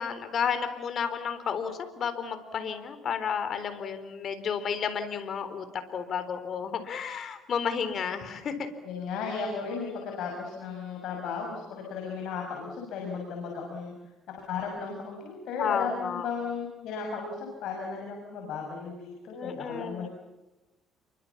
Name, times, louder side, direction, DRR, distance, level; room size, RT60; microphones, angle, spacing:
voice 1, 0.0-8.7 9.9-10.1 15.6-16.3 19.3-20.1, left 7 dB, 50° left, 10 dB, 3.8 m, -32 dB
voice 2, 8.8-13.9 14.5-20.1, left 5 dB, 70° left, 0 dB, 6.5 m, -35 dB
29.0 x 24.0 x 7.2 m, 1.1 s
cardioid pair, 110°, 0 cm